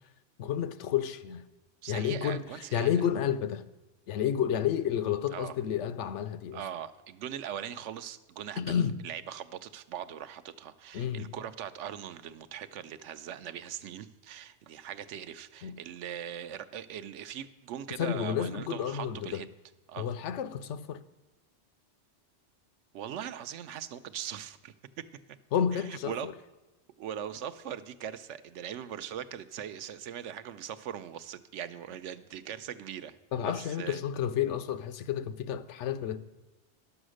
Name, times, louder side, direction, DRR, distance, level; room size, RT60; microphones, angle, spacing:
voice 1, 0.4-1.4 1.9-2.5 2.7-3.6 4.1-6.6 8.6-9.0 10.9-11.3 15.6-15.8 18.0-19.4 20.0-21.0 25.5-26.3 33.3-36.2, left 9 dB, 85° left, 0.9 m, -30 dB
voice 2, 1.8-2.9 5.3-5.5 6.5-19.5 19.9-20.1 22.9-25.1 25.7-26.3 27.0-33.2 33.4-34.0, right 9 dB, 85° right, 0.9 m, -40 dB
11.0 x 7.1 x 6.3 m
omnidirectional pair, 1.2 m